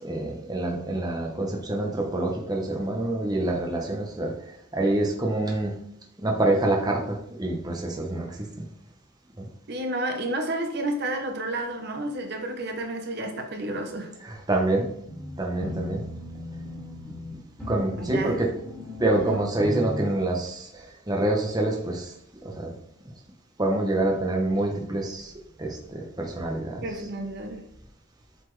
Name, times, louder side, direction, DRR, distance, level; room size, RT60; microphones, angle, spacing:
voice 1, 0.0-4.3 4.7-5.7 6.2-8.3 9.4-9.5 14.5-14.9 15.4-16.0 17.7-18.5 19.0-20.7 21.1-22.1 22.5-22.7 23.6-25.3 25.6-26.8, right 2 dB, 20° right, 0 dB, 0.8 m, -26 dB
voice 2, 9.7-14.1 18.0-18.5 19.1-19.4 26.8-27.6, right 1 dB, 50° right, 4 dB, 0.8 m, -31 dB
sound 1, 15.1-20.1, left 1 dB, 5° left, 2.1 m, -37 dB
7.7 x 4.2 x 3.2 m, 0.69 s
head